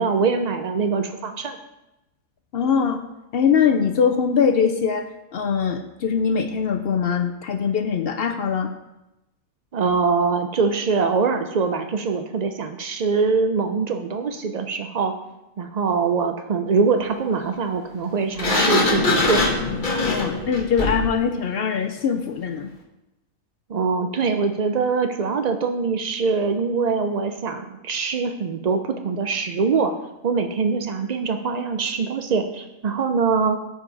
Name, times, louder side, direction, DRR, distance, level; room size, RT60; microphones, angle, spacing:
voice 1, 0.0-1.6 9.7-15.1 15.6-19.4 23.7-29.9 30.2-33.6, right 5 dB, 90° right, 7 dB, 0.3 m, -23 dB
voice 2, 2.5-3.0 3.3-5.0 5.3-8.7 20.0-22.7, left 6 dB, 65° left, 7 dB, 0.6 m, -22 dB
Sliding door, 18.4-21.1, left 2 dB, 35° left, 1.3 m, -22 dB
13.5 x 5.2 x 4.0 m, 0.95 s
omnidirectional pair, 1.5 m